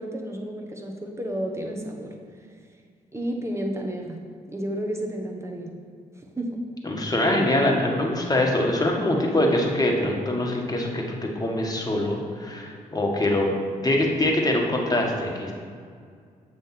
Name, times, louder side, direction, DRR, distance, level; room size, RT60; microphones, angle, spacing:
voice 1, 0.0-2.1 3.1-4.2 4.5-5.7 6.2-6.6, right 1 dB, 15° right, 1 dB, 1.3 m, -31 dB
voice 2, 6.8-11.0 11.3-13.5 13.8-15.5, left 1 dB, 20° left, 0 dB, 1.6 m, -23 dB
7.2 x 3.5 x 5.9 m, 2.1 s
hypercardioid pair, 45°, 17 cm